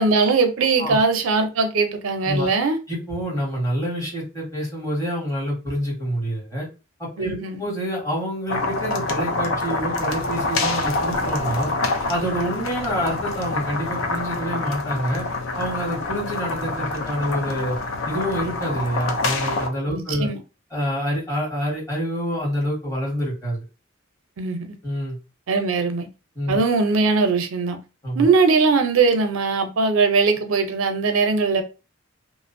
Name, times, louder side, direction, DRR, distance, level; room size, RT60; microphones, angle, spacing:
voice 1, 0.0-2.8 7.2-7.6 19.9-20.4 24.4-24.7 25.5-26.1 26.5-27.8 28.1-31.6, right 4 dB, 90° right, 0.5 m, -20 dB
voice 2, 2.9-6.7 7.0-11.7 12.1-15.2 15.6-17.8 18.0-20.3 20.7-23.6 24.8-25.1 26.3-26.6 28.0-28.3, equal, 15° left, 1.3 m, -27 dB
sound 1, 8.5-19.7, left 2 dB, 70° left, 0.5 m, -26 dB
2.5 x 2.0 x 2.5 m
head